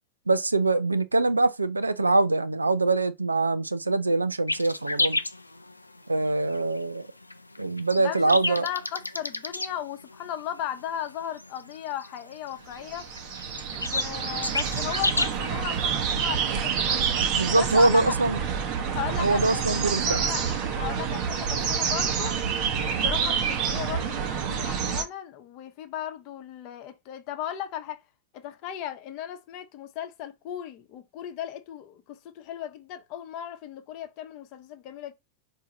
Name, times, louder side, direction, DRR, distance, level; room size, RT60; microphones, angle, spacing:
voice 1, 0.3-5.2 6.1-7.0 7.6-8.7 17.3-18.4 19.2-20.2, right 2 dB, 80° right, 0.4 m, -23 dB
sound 1, 4.5-15.9, left 2 dB, 85° left, 0.4 m, -32 dB
voice 2, 8.0-13.1 13.7-17.1 17.6-18.0 18.9-19.7 20.0-22.4 22.8-28.0 28.3-35.1, left 10 dB, 40° left, 0.9 m, -36 dB
sound 2, 12.8-25.0, right 7 dB, 45° right, 1.0 m, -28 dB
4.8 x 2.7 x 4.0 m
figure-of-eight pair, 90°, 0 cm